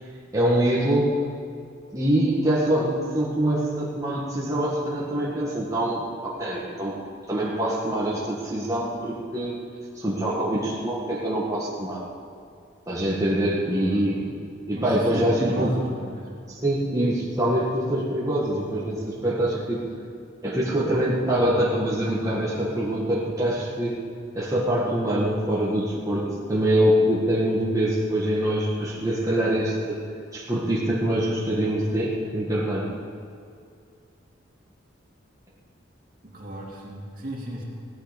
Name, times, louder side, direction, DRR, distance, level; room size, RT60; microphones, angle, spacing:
voice 1, 0.3-1.1 1.9-7.0 7.3-9.6 10.0-12.0 12.9-14.3 14.6-15.8 16.5-19.8 20.4-24.0 24.3-30.0 30.3-32.9, right 1 dB, 15° right, -7 dB, 1.8 m, -24 dB
voice 2, 13.7-14.0 14.8-16.3 36.2-37.6, right 1 dB, 45° right, -2 dB, 2.6 m, -35 dB
17.0 x 11.5 x 5.2 m, 2.3 s
head